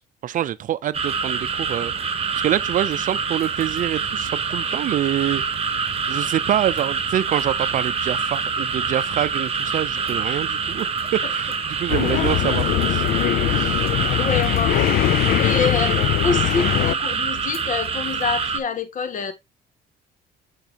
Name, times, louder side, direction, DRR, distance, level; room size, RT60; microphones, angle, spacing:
voice 1, 0.0-5.4 6.1-13.1, right 11 dB, 50° right, 0.5 m, -26 dB
sound 1, 0.9-18.6, right 5 dB, 35° right, 1.2 m, -25 dB
sound 2, 11.9-16.9, left 14 dB, 65° left, 0.5 m, -21 dB
voice 2, 13.4-13.9 14.2-14.8 15.1-19.3, left 5 dB, 50° left, 1.8 m, -27 dB
6.9 x 6.5 x 2.9 m
cardioid pair, 110°, 17 cm